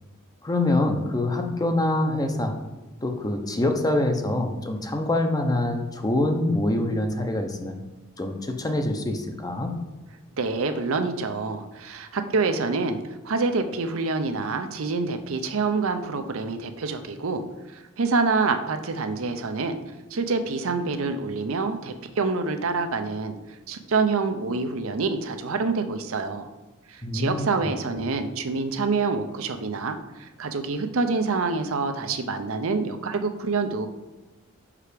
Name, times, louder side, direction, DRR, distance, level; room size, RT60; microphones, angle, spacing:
voice 1, 0.4-2.6 3.0-7.7 8.2-9.7 27.0-27.5, left 1 dB, 20° left, 4 dB, 0.7 m, -25 dB
voice 2, 10.4-17.4 17.7-19.8 20.1-23.4 23.7-26.5 26.9-33.9, right 4 dB, 70° right, 7 dB, 0.6 m, -26 dB
5.7 x 4.8 x 5.0 m, 1.2 s
head